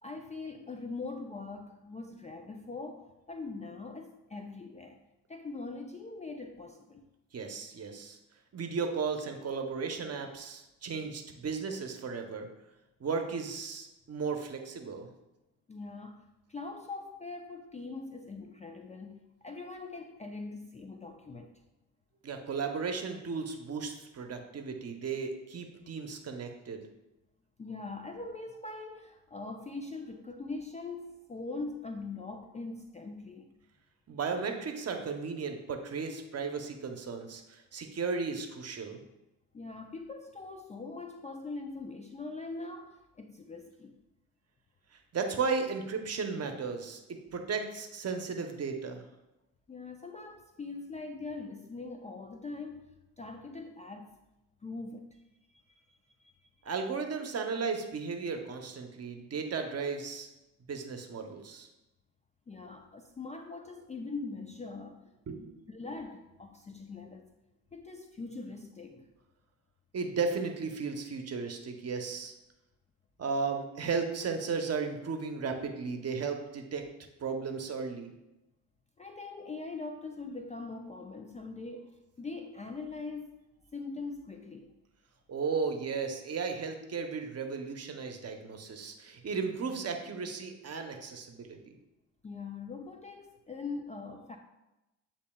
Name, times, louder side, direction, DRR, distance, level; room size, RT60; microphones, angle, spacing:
voice 1, 0.0-5.0 5.3-7.1 15.7-21.6 27.6-33.5 39.5-44.0 49.7-54.1 54.6-55.2 55.5-56.5 59.1-59.2 62.5-65.1 65.7-67.3 67.7-69.1 79.0-83.4 83.7-84.7 92.2-94.4, left 3 dB, 20° left, 4 dB, 0.4 m, -42 dB
voice 2, 7.3-8.2 8.5-12.5 13.0-15.1 22.2-26.8 34.1-39.0 44.9-47.0 47.3-49.0 56.6-60.3 60.7-61.7 65.3-65.7 69.9-72.3 73.2-76.8 77.2-78.1 85.3-91.8, right 5 dB, 40° right, 5 dB, 0.8 m, -35 dB
8.2 x 2.8 x 2.3 m, 0.95 s
supercardioid pair, 65°, 38 cm